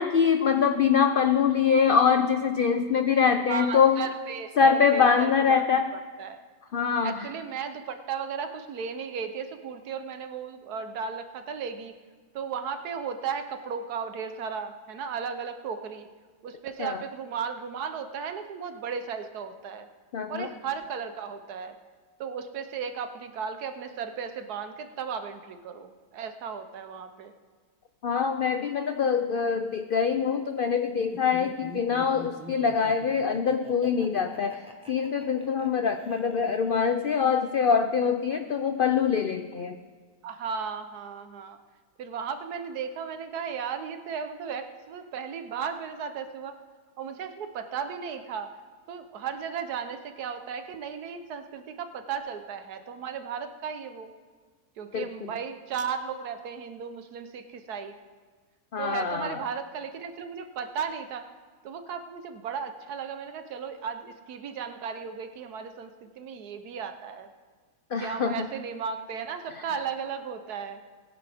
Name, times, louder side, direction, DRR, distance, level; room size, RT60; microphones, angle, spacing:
voice 1, 0.0-4.1 4.6-5.9 6.7-7.3 16.8-17.0 20.1-20.5 28.0-39.8 54.9-55.1 58.7-59.4 67.9-68.5, left 6 dB, 90° left, 7 dB, 0.4 m, -24 dB
voice 2, 3.5-5.6 6.2-6.4 7.0-12.0 12.3-16.1 16.4-19.9 20.3-21.7 22.2-27.3 40.2-41.6 42.0-46.6 47.0-48.5 48.9-54.1 54.8-57.9 58.8-61.3 61.6-67.3 68.0-70.8, right 6 dB, 80° right, 8 dB, 1.4 m, -35 dB
Laughter, 31.0-36.9, left 1 dB, 5° right, 1.0 m, -45 dB
20.0 x 10.0 x 3.5 m, 1.5 s
omnidirectional pair, 1.6 m